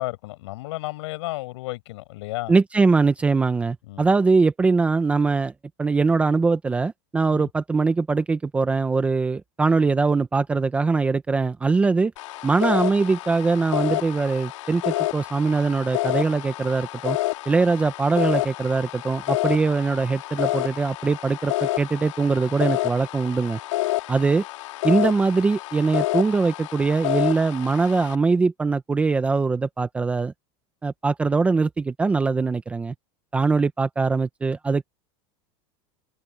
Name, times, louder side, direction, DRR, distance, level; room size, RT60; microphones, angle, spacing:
voice 1, 0.0-2.5 3.8-4.1 7.3-7.5, left 19 dB, 70° left, 6.2 m, -32 dB
voice 2, 2.5-5.5 5.8-12.1 12.4-17.2 17.5-23.6 24.1-24.4 24.8-30.3 30.8-32.9 33.3-34.9, right 4 dB, 10° right, 0.6 m, -22 dB
sound 1, 12.2-28.2, left 18 dB, 90° left, 2.6 m, -29 dB
supercardioid pair, 180°, 15 cm